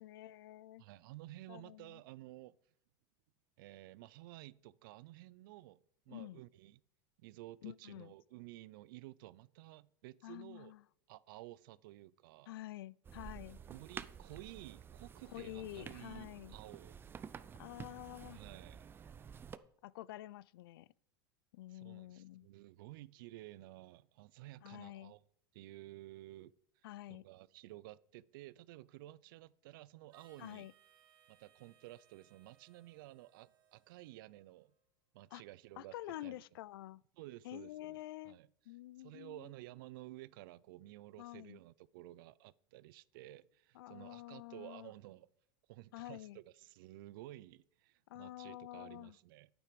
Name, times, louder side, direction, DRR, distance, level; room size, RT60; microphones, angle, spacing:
voice 1, 0.0-0.8 1.5-2.0 6.1-6.4 7.6-8.1 10.2-10.8 12.5-13.6 15.3-16.6 17.6-18.4 19.8-20.9 21.5-22.5 24.6-25.1 26.8-27.2 30.4-30.7 35.3-35.4 35.8-37.0 37.4-38.4 38.7-39.5 41.2-41.6 43.7-44.9 45.9-46.4 48.1-49.2, left 15 dB, 80° left, 0.4 m, -48 dB
voice 2, 0.8-2.6 3.6-5.8 6.1-6.8 7.2-10.7 11.1-12.5 13.7-16.9 18.3-18.8 21.7-25.2 25.5-26.5 27.1-30.7 31.3-34.7 35.1-35.9 36.2-36.4 37.2-38.0 38.2-38.5 39.0-45.3 45.7-49.5, right 17 dB, 70° right, 0.5 m, -53 dB
sound 1, 13.0-19.6, right 7 dB, 20° right, 0.5 m, -51 dB
Harmonica, 30.1-34.8, right 8 dB, 35° right, 3.1 m, -69 dB
9.7 x 8.7 x 5.1 m
supercardioid pair, 130°, 12 cm